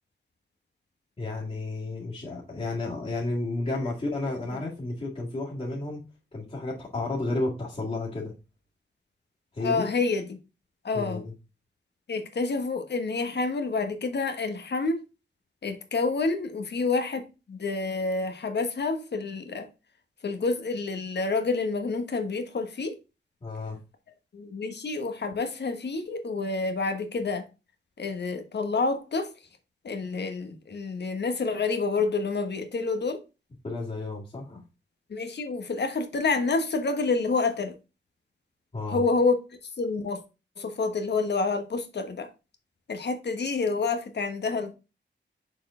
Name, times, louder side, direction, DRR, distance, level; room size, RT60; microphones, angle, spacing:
voice 1, 1.2-6.0 6.3-8.3 9.5-9.9 10.9-11.3 23.4-23.8 33.6-34.6 38.7-39.0, left 2 dB, 35° left, 2.1 m, -32 dB
voice 2, 9.6-10.4 10.8-11.2 12.1-15.0 15.6-19.7 20.2-23.0 24.3-27.5 28.0-29.3 29.8-33.2 35.1-37.7 38.9-39.3 39.8-40.2 40.6-42.3 42.9-44.7, left 3 dB, 65° left, 1.2 m, -28 dB
6.6 x 4.3 x 3.7 m
wide cardioid pair, 135°, 19 cm